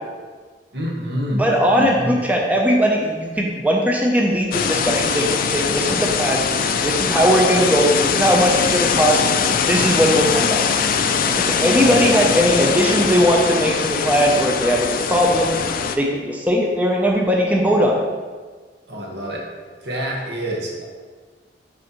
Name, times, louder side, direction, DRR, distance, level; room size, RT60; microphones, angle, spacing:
voice 1, 0.7-1.5 1.7-2.2 11.8-12.0 18.9-19.5 19.8-20.9, equal, 65° right, -2 dB, 1.2 m, -27 dB
voice 2, 1.4-6.4 6.8-9.2 9.7-10.6 11.2-15.6 16.0-18.1, equal, 10° right, -1 dB, 0.5 m, -19 dB
sound 1, 4.5-16.0, left 6 dB, 50° left, 0.4 m, -21 dB
6.2 x 5.2 x 2.9 m, 1.4 s
head